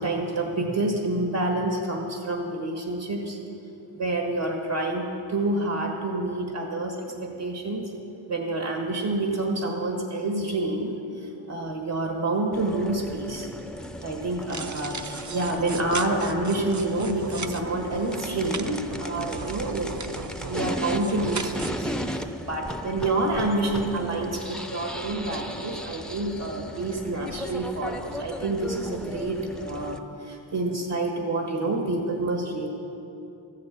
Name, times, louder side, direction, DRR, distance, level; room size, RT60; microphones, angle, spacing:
voice 1, 0.0-3.4 3.9-7.9 8.3-13.5 14.0-19.9 20.2-32.7, right 2 dB, 65° right, 1 dB, 1.6 m, -28 dB
sound 1, 12.5-30.0, equal, ahead, 0.6 m, -36 dB
sound 2, 14.4-21.7, right 4 dB, 40° right, 0.7 m, -37 dB
14.0 x 6.7 x 8.3 m, 2.8 s
cardioid pair, 45°, 47 cm